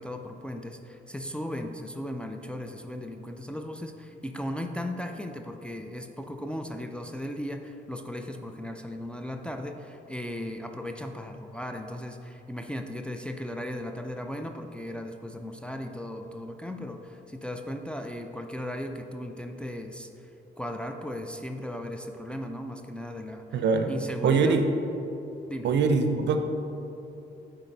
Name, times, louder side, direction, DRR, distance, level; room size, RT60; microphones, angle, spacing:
voice 1, 0.0-20.3 20.6-23.6 23.9-24.6 25.5-25.7, left 1 dB, 5° left, 4 dB, 0.4 m, -37 dB
voice 2, 23.5-23.9 24.2-24.6 25.6-26.4, right 5 dB, 65° right, 6 dB, 0.6 m, -22 dB
10.0 x 4.0 x 4.0 m, 2.9 s
cardioid pair, 90°, 20 cm